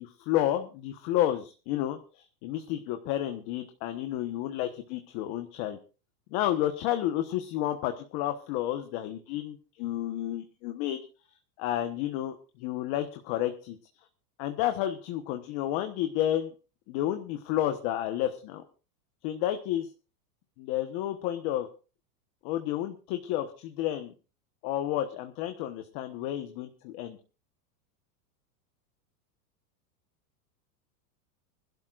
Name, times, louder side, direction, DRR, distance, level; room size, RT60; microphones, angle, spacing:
voice 1, 0.0-5.8 6.3-11.0 11.6-13.8 14.4-16.5 16.9-18.6 19.2-19.9 20.6-21.7 22.4-24.1 24.6-27.2, left 12 dB, 40° left, 7 dB, 1.2 m, -31 dB
25.0 x 12.0 x 2.5 m, 0.33 s
supercardioid pair, 155°, 47 cm